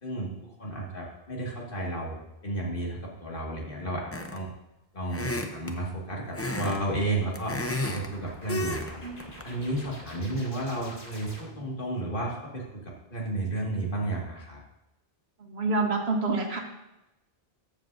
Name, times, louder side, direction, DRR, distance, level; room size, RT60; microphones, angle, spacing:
voice 1, 0.0-4.5 4.9-7.6 7.8-9.0 9.4-14.6, right 2 dB, 55° left, -2 dB, 2.1 m, -32 dB
sound 1, 4.1-4.5 5.1-5.8 6.3-6.8 7.1-8.1 8.5-8.9 9.2-9.4, left 1 dB, 15° left, 0.6 m, -32 dB
sound 2, 6.6-11.8, equal, 35° left, 2.6 m, -47 dB
voice 2, 15.4-16.6, right 3 dB, 75° right, 2 dB, 1.5 m, -27 dB
14.0 x 7.3 x 2.6 m, 0.93 s
omnidirectional pair, 1.1 m